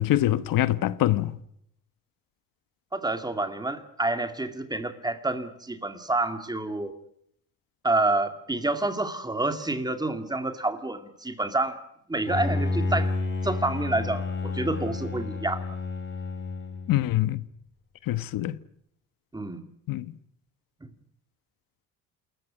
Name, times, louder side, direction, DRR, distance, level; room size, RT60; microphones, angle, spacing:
voice 1, 0.0-1.4 16.9-17.4 18.1-18.5 19.9-20.1, left 14 dB, 75° left, 1.2 m, -24 dB
voice 2, 2.9-7.0 7.8-11.8 12.1-13.1 13.4-15.8 19.3-19.6, right 2 dB, 10° right, 2.3 m, -28 dB
Bowed string instrument, 12.3-17.2, left 3 dB, 35° left, 4.3 m, -30 dB
27.5 x 14.5 x 9.7 m
cardioid pair, 115°, 34 cm